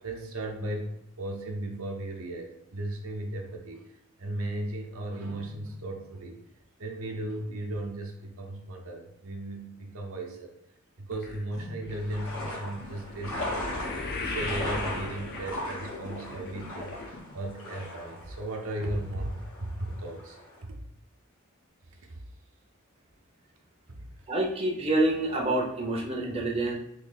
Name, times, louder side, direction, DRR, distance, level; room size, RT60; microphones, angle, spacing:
voice 1, 0.0-6.4 6.8-10.5 11.0-20.8 21.9-22.2 23.9-24.0, right 1 dB, 75° right, 2 dB, 0.7 m, -36 dB
sound 1, 11.1-17.5 17.8-18.2 18.8-18.9 19.2-19.3, left 2 dB, 50° left, 0.6 m, -38 dB
sound 2, 11.9-20.6, left 1 dB, 80° left, 1.4 m, -39 dB
voice 2, 24.3-26.7, right 2 dB, 30° right, -2 dB, 0.6 m, -27 dB
3.1 x 2.7 x 4.0 m, 0.79 s
head